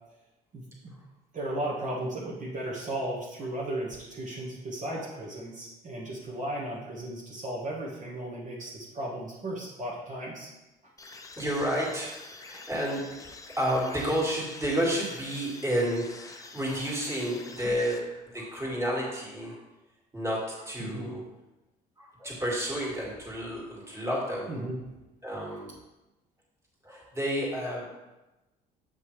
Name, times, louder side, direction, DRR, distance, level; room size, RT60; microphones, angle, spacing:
voice 1, 0.5-0.9 1.3-10.5 20.8-21.1 24.5-24.8, right 1 dB, 50° right, -5 dB, 1.6 m, -35 dB
sound 1, 11.0-18.5, left 3 dB, 20° left, 0.6 m, -47 dB
voice 2, 11.4-12.1 12.4-13.3 13.6-18.0 18.3-19.6 20.1-21.2 22.0-24.5 25.2-25.7 26.8-27.9, equal, 15° right, -4 dB, 2.3 m, -31 dB
7.7 x 5.3 x 3.3 m, 1.0 s
cardioid pair, 110°, 17 cm